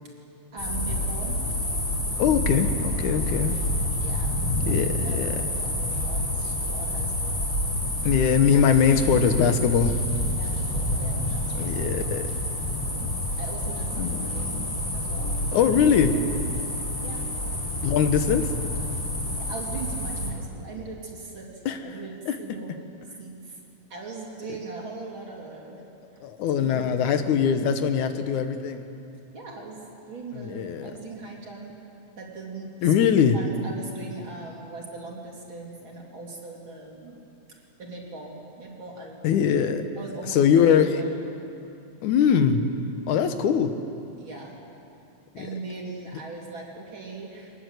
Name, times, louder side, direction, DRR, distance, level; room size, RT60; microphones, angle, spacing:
voice 1, 0.5-1.4 4.0-7.4 8.3-9.0 10.4-12.1 13.4-15.7 16.1-16.3 17.0-17.2 19.4-22.8 23.2-23.6 23.9-25.8 26.5-27.2 29.3-31.9 32.2-32.9 33.3-37.2 37.8-39.3 40.0-41.2 44.2-44.6 45.4-47.5, right 3 dB, 45° right, -1 dB, 3.7 m, -40 dB
sound 1, 0.6-20.3, left 1 dB, 25° left, 5.0 m, -28 dB
voice 2, 2.2-3.6 4.7-5.3 8.0-10.0 11.5-12.2 13.0-13.1 14.0-14.2 15.5-16.1 17.8-18.5 21.7-21.8 22.3-22.4 26.2-28.9 30.3-30.9 32.8-33.4 39.2-39.8 40.3-41.0 42.0-42.7 43.1-43.7, left 7 dB, 90° left, 8 dB, 2.6 m, -22 dB
23.5 x 19.5 x 8.0 m, 2.7 s
omnidirectional pair, 3.3 m